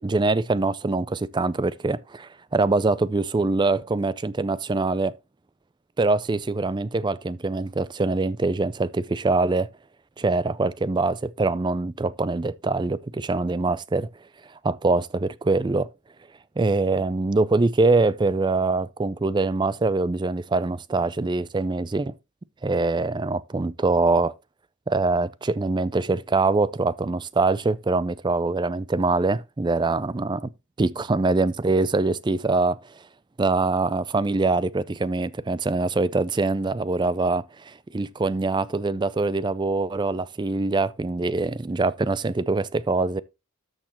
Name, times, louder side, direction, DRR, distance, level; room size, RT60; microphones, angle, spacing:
voice 1, 0.0-5.1 6.0-9.7 10.2-14.1 14.6-15.9 16.6-22.1 22.6-24.3 24.9-30.4 30.8-32.8 33.4-43.2, right 3 dB, 20° right, 0.4 m, -24 dB
13.0 x 6.5 x 3.0 m
head